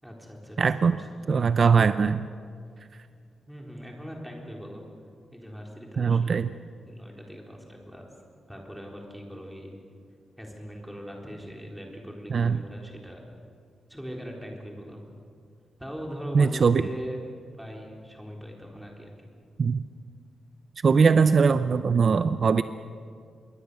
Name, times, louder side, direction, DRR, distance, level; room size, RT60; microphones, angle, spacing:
voice 1, 0.0-1.2 3.5-4.8 5.3-6.4 6.9-8.1 8.5-9.7 10.4-13.2 13.9-15.0 15.8-17.2 17.6-19.3, equal, ahead, -1 dB, 3.9 m, -40 dB
voice 2, 0.6-1.0 1.3-2.2 6.0-6.5 12.3-12.6 16.3-16.8 19.6-19.8 20.8-22.6, right 5 dB, 40° right, 11 dB, 0.5 m, -21 dB
26.5 x 22.5 x 6.8 m, 2.2 s
wide cardioid pair, 165°, 0 cm